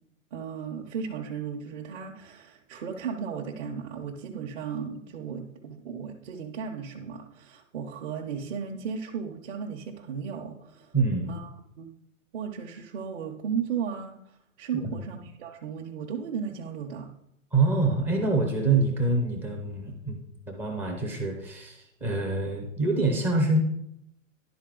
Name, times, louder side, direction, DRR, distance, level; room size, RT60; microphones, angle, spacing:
voice 1, 0.3-10.9 11.3-11.5 11.8-11.9 12.3-14.2 14.6-17.1, right 6 dB, 50° right, -2 dB, 1.0 m, -35 dB
voice 2, 10.9-11.3 14.7-14.9 17.5-20.2 20.5-23.6, right 3 dB, 5° right, 0 dB, 0.4 m, -26 dB
11.5 x 4.1 x 3.8 m, 0.77 s
hypercardioid pair, 135°, 42 cm